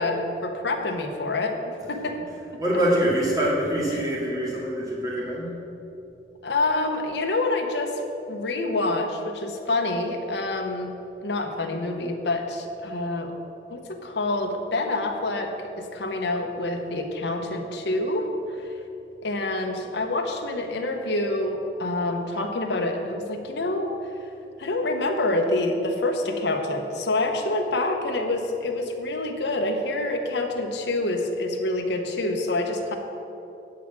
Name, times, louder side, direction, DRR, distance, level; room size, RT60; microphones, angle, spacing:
voice 1, 0.0-1.5 1.9-2.1 3.9-4.0 6.4-7.9 8.3-10.9 11.2-13.3 13.7-15.5 15.8-18.7 19.2-23.9 24.6-33.0, left 2 dB, 70° left, 4 dB, 1.0 m, -27 dB
voice 2, 2.6-5.6, equal, 20° right, -6 dB, 2.1 m, -24 dB
9.1 x 4.8 x 7.4 m, 2.8 s
head